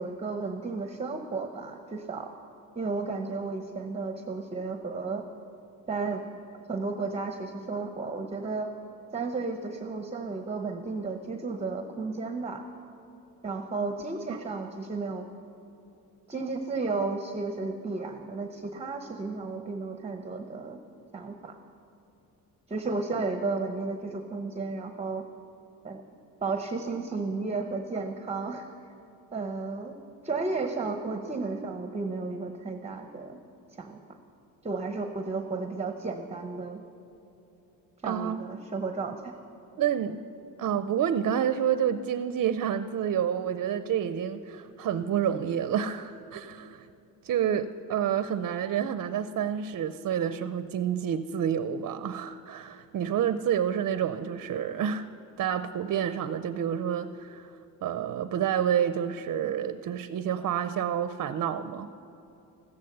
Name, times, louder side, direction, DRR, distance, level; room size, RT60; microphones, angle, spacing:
voice 1, 0.0-2.3 2.7-5.2 5.9-6.2 6.7-8.7 9.1-12.6 13.4-15.2 16.3-20.8 21.1-21.6 22.7-25.2 25.8-26.0 26.4-28.6 29.3-29.9 30.2-33.4 33.8-34.0 34.6-36.8 38.0-39.3, right 3 dB, 15° right, 5 dB, 0.8 m, -33 dB
voice 2, 38.0-38.4 39.8-40.2 40.6-46.9 47.2-55.1 55.4-62.0, right 9 dB, 50° right, 11 dB, 0.6 m, -29 dB
15.0 x 13.5 x 6.7 m, 3.0 s
cardioid pair, 120°, 37 cm